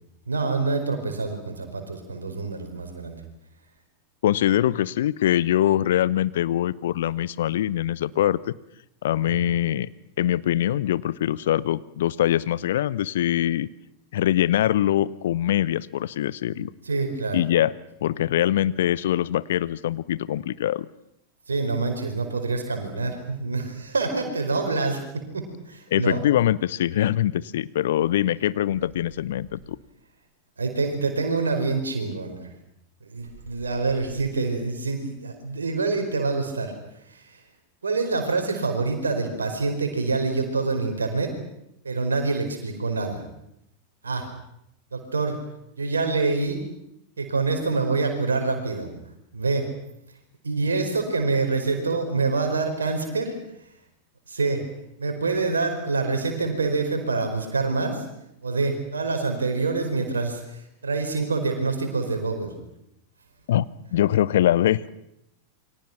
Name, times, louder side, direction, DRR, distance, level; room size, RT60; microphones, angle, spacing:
voice 1, 0.3-3.2 9.2-9.5 16.5-17.5 21.5-26.2 30.6-32.5 33.0-36.7 37.1-37.2 37.8-41.3 41.8-43.2 44.0-44.3 44.9-45.4 45.8-46.6 47.2-48.9 49.3-49.7 50.4-53.4 54.3-54.6 55.0-58.0 58.4-62.5, right 3 dB, 75° right, 5 dB, 5.1 m, -26 dB
voice 2, 4.2-8.5 9.0-9.9 10.2-13.7 14.1-16.7 17.3-17.7 18.0-20.9 25.9-29.8 63.5-63.7 63.9-64.9, left 12 dB, 60° left, 19 dB, 0.8 m, -23 dB
28.0 x 24.0 x 6.1 m, 0.81 s
figure-of-eight pair, 90°, 0 cm